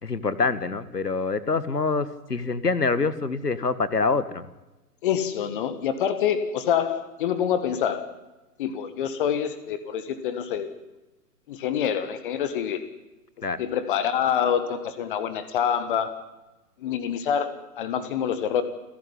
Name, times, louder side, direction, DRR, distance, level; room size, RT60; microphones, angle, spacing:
voice 1, 0.0-4.5 13.4-13.6, left 4 dB, 80° left, 15 dB, 1.9 m, -25 dB
voice 2, 5.0-8.0 8.6-10.7 11.5-12.8 13.6-16.2 16.8-18.6, left 8 dB, 35° left, 12 dB, 1.6 m, -26 dB
29.5 x 12.0 x 10.0 m, 1.1 s
figure-of-eight pair, 125°, 47 cm